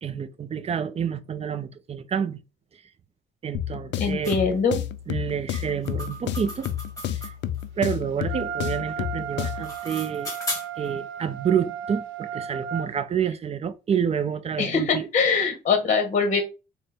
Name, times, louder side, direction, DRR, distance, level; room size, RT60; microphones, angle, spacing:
voice 1, 0.0-2.4 3.4-4.4 5.1-6.7 7.1-7.3 7.8-10.3 10.8-15.1, right 8 dB, 30° right, 0.4 m, -28 dB
sound 1, 3.5-9.8, left 11 dB, 65° left, 0.4 m, -31 dB
voice 2, 4.0-4.8 14.6-16.4, left 5 dB, 40° left, 0.9 m, -22 dB
sound 2, 4.2-4.4 5.5-7.6 9.3-10.9, left 1 dB, 15° left, 1.4 m, -36 dB
Wind instrument woodwind instrument, 8.3-12.9, right 8 dB, 80° right, 0.5 m, -34 dB
4.3 x 2.0 x 3.3 m
cardioid pair, 90°, 20 cm